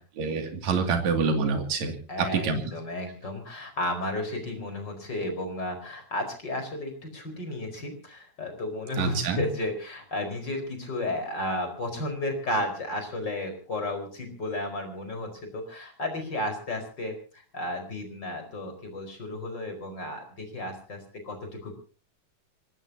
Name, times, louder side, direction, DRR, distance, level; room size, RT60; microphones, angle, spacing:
voice 1, 0.2-2.6 9.0-9.4, right 4 dB, 70° right, 4 dB, 3.7 m, -27 dB
voice 2, 2.1-21.0 21.2-21.8, left 1 dB, 35° left, 5 dB, 5.2 m, -33 dB
26.0 x 19.0 x 2.8 m, 0.36 s
omnidirectional pair, 3.4 m